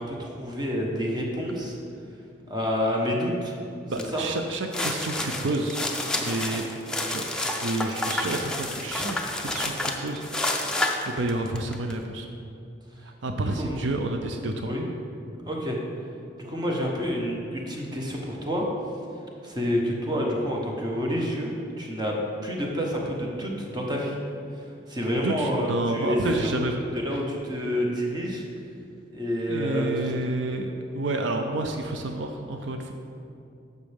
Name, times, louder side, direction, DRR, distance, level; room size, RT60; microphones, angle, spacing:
voice 1, 0.0-1.7 2.5-3.5 4.1-4.2 13.6-13.8 14.7-14.8 15.4-15.8 16.4-18.7 19.4-22.2 22.4-24.1 24.6-26.6 26.9-28.4 29.1-29.9, equal, 25° right, -1 dB, 1.1 m, -28 dB
voice 2, 3.9-5.8 6.2-6.6 7.1-12.3 13.0-14.8 25.2-26.8 27.1-27.2 29.5-32.9, right 2 dB, 75° right, 5 dB, 0.5 m, -30 dB
sound 1, 4.0-4.1 4.5-11.9, left 2 dB, 5° left, 0.6 m, -29 dB
11.5 x 6.7 x 3.5 m, 2.6 s
head